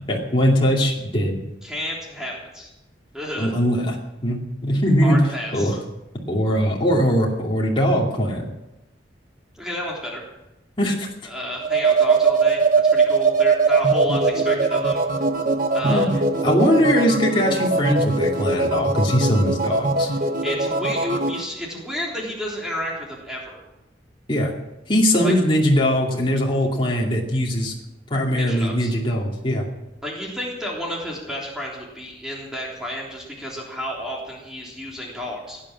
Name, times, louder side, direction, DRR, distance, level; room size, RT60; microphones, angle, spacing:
voice 1, 0.1-1.4 3.4-4.0 4.2-5.2 5.5-5.8 6.3-8.5 10.8-11.1 15.8-16.1 16.4-20.1 24.3-24.5 24.9-27.7 28.1-29.6, equal, 25° left, -2 dB, 2.5 m, -20 dB
voice 2, 1.6-2.7 3.1-3.6 5.0-5.8 9.5-10.2 11.3-15.0 15.7-16.1 20.1-23.6 25.2-25.3 28.3-28.9 30.0-35.6, equal, 5° right, -3 dB, 3.4 m, -31 dB
sound 1, 11.6-21.4, right 4 dB, 45° right, 1.1 m, -21 dB
18.5 x 10.0 x 7.5 m, 0.95 s
head